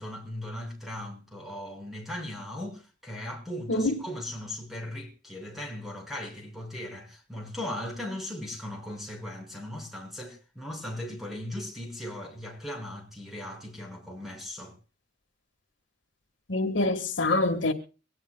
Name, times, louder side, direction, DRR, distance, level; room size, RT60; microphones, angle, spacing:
voice 1, 0.0-14.8, left 1 dB, ahead, 5.4 m, -38 dB
voice 2, 16.5-17.7, left 2 dB, 75° left, 1.5 m, -25 dB
23.5 x 17.5 x 2.2 m
head